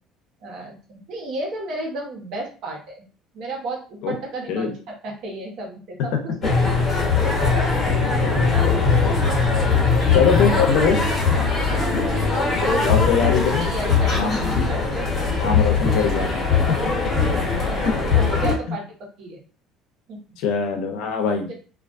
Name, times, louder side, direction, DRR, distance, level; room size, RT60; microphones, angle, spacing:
voice 1, 0.4-3.0 3.3-4.7 5.0-8.3 9.6-10.0 11.7-12.8 13.1-15.1 16.8-18.8 19.2-19.4 20.1-20.2 21.5-21.6, right 2 dB, 65° right, 0 dB, 0.9 m, -33 dB
sound 1, 6.4-18.5, left 4 dB, 35° left, 1.0 m, -20 dB
voice 2, 8.2-9.3 10.1-11.5 12.8-13.7 14.1-14.5 15.4-16.9 17.8-17.9 18.7-18.8 20.4-21.5, left 6 dB, 75° left, 4 dB, 0.6 m, -23 dB
2.3 x 2.2 x 2.5 m, 0.38 s
cardioid pair, 110°, 0 cm